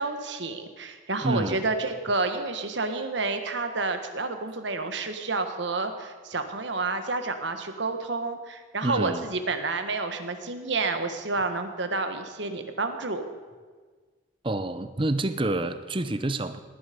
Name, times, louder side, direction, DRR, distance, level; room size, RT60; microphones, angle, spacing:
voice 1, 0.0-13.3, right 3 dB, 65° right, 7 dB, 1.4 m, -29 dB
voice 2, 1.2-1.6 8.8-9.3 14.4-16.6, right 2 dB, 25° right, 11 dB, 0.7 m, -28 dB
18.5 x 11.0 x 5.2 m, 1.5 s
head